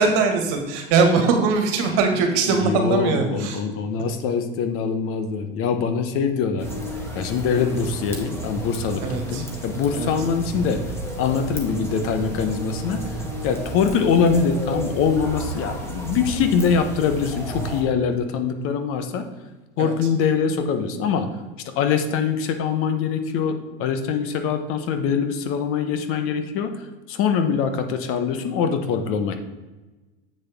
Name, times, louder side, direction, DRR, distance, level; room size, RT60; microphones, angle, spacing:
voice 1, 0.0-3.6 9.0-9.4 9.9-10.1 19.8-19.9, right 4 dB, 60° right, 5 dB, 1.7 m, -21 dB
voice 2, 2.5-6.7 7.1-10.8 11.2-13.0 13.4-19.3 19.8-21.3 21.8-29.4, left 6 dB, 50° left, 8 dB, 1.0 m, -23 dB
sound 1, 6.6-17.8, right 1 dB, 10° left, 1.9 m, -32 dB
7.8 x 6.6 x 3.5 m, 1.1 s
hypercardioid pair, 105°, 29 cm